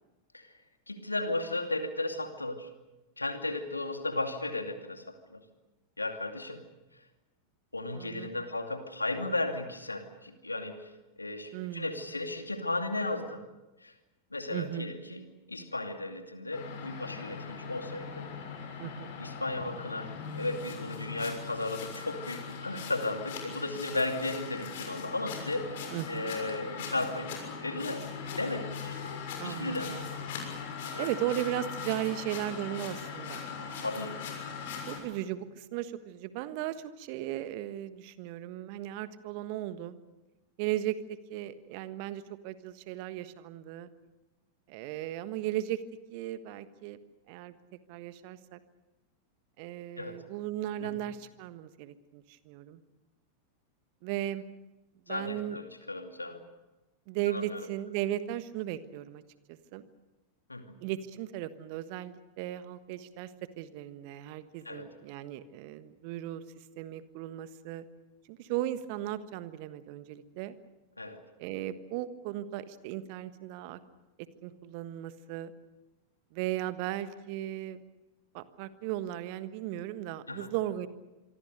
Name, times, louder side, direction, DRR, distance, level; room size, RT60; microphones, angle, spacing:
voice 1, 0.9-2.7 3.2-5.4 6.0-6.6 7.7-10.9 11.2-13.4 13.8-13.9 14.3-15.2 15.5-18.3 19.2-25.7 26.1-27.3 27.6-29.0 29.4-30.0 30.9-31.1 33.8-34.2 50.0-50.2 50.8-51.0 55.1-56.4 57.3-57.7 60.5-60.7 64.6-64.9 71.0-71.2 80.3-80.5, left 2 dB, 80° left, 6 dB, 2.5 m, -35 dB
voice 2, 7.9-8.3 11.5-11.9 14.5-14.9 18.8-19.1 25.9-26.3 29.4-30.1 31.0-33.4 34.9-40.0 40.6-43.9 44.7-45.8 46.1-47.0 47.3-47.6 47.9-48.6 49.6-52.8 54.0-54.4 55.1-55.6 57.1-59.2 59.5-59.8 60.8-63.3 63.6-67.8 68.3-70.5 71.4-73.8 74.4-75.5 76.3-77.8 78.3-80.9, right 13 dB, 45° right, 13 dB, 1.4 m, -36 dB
sound 1, 16.5-35.0, left 6 dB, 55° left, 6.6 m, -40 dB
26.5 x 24.0 x 6.7 m, 1.0 s
figure-of-eight pair, 90°, 0 cm